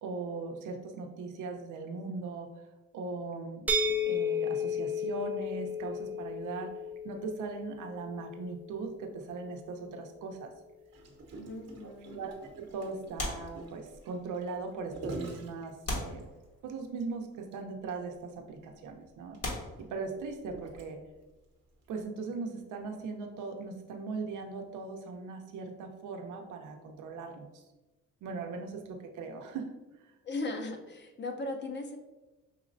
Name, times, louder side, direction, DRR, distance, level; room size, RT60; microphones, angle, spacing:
voice 1, 0.0-2.5 2.9-6.7 7.0-10.5 12.1-16.2 16.6-19.4 19.8-21.0 21.9-27.6 28.2-29.7 30.0-30.1, right 4 dB, 80° right, 4 dB, 0.7 m, -39 dB
sound 1, 3.7-9.4, left 3 dB, 5° right, 0.4 m, -34 dB
Gurgling, 10.9-16.4 17.0-17.1 17.4-17.6 17.9-18.0 18.7-21.2 21.9-22.0, right 3 dB, 55° right, 0.9 m, -46 dB
voice 2, 11.4-12.2 30.2-32.0, left 2 dB, 35° left, 4 dB, 0.7 m, -37 dB
sound 2, 13.2-14.2 15.0-15.1 15.8-16.9 17.9-18.1 18.8-18.9 19.4-20.6 22.5-24.3 24.6-24.8, left 2 dB, 55° left, 1.4 m, -40 dB
5.6 x 3.1 x 2.6 m, 1.1 s
cardioid pair, 90°, 30 cm